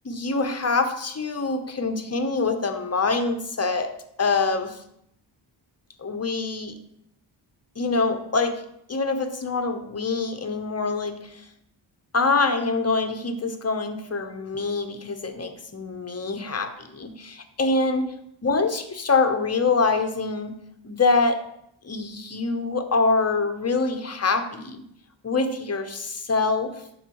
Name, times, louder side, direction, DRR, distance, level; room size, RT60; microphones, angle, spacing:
voice 1, 0.1-3.9 4.2-4.8 6.0-6.7 7.8-8.6 8.9-11.4 12.1-18.1 18.4-20.6 20.8-21.4 21.8-24.8 25.2-26.7, left 3 dB, 30° left, 7 dB, 0.9 m, -25 dB
11.5 x 4.0 x 3.1 m, 0.74 s
cardioid pair, 65°, 49 cm